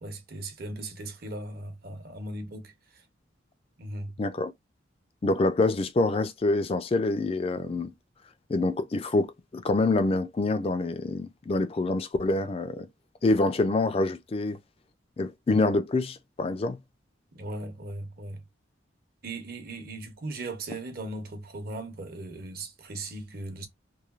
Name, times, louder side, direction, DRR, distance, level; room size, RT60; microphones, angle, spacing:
voice 1, 0.0-3.0 3.8-4.2 17.3-18.4 19.2-23.7, right 2 dB, 50° right, 0.8 m, -38 dB
voice 2, 4.2-4.5 5.2-7.9 8.5-12.9 13.2-14.6 15.2-16.8, left 2 dB, 30° left, 0.3 m, -26 dB
3.1 x 2.2 x 2.3 m
head